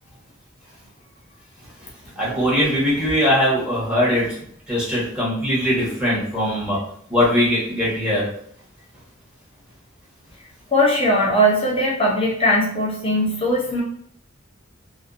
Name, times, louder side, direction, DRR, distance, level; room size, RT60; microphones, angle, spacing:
voice 1, 2.2-4.4 4.7-6.8 7.1-8.3, equal, 5° right, -8 dB, 0.9 m, -20 dB
voice 2, 10.7-13.8, equal, 30° left, -3 dB, 0.7 m, -19 dB
2.6 x 2.0 x 2.3 m, 0.63 s
head